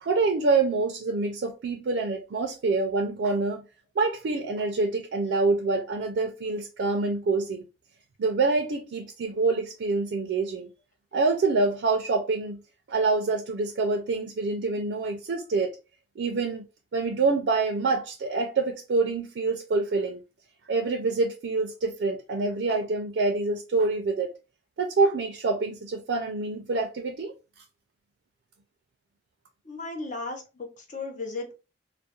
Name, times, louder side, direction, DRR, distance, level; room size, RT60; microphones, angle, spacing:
voice 1, 0.0-3.6 4.0-7.6 8.2-10.7 11.1-12.6 12.9-15.8 16.2-16.7 16.9-20.2 20.7-24.3 24.8-27.3, right 3 dB, 75° right, 0.4 m, -26 dB
voice 2, 29.7-31.6, left 3 dB, 45° left, 0.6 m, -35 dB
2.3 x 2.0 x 2.8 m
head